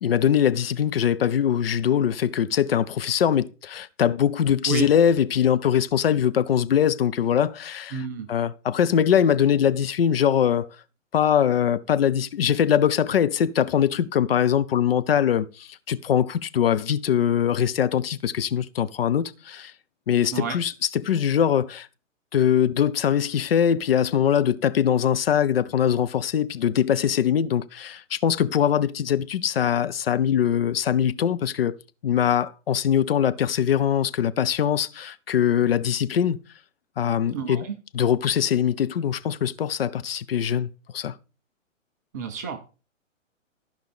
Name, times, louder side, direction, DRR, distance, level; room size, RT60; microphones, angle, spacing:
voice 1, 0.0-10.7 11.1-19.7 20.1-21.9 22.3-31.8 32.0-36.4 37.0-37.6 37.9-41.1, left 9 dB, 50° left, 0.5 m, -22 dB
voice 2, 7.9-8.3 20.3-20.6 37.3-37.7 42.1-42.6, right 7 dB, 15° right, 0.4 m, -30 dB
14.5 x 5.2 x 3.5 m
figure-of-eight pair, 125°, 39 cm